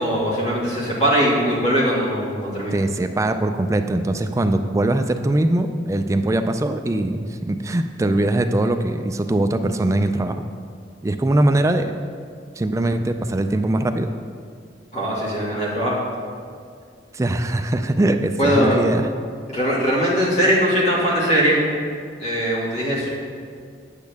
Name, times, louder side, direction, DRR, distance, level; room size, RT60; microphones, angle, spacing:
voice 1, 0.0-2.8 14.9-16.0 18.4-18.8 19.5-21.6 22.2-23.1, equal, 40° left, -6 dB, 2.2 m, -20 dB
voice 2, 2.7-10.4 11.0-11.9 12.6-14.1 17.1-19.1, right 1 dB, 15° right, 7 dB, 0.3 m, -21 dB
9.3 x 8.3 x 3.5 m, 2.1 s
head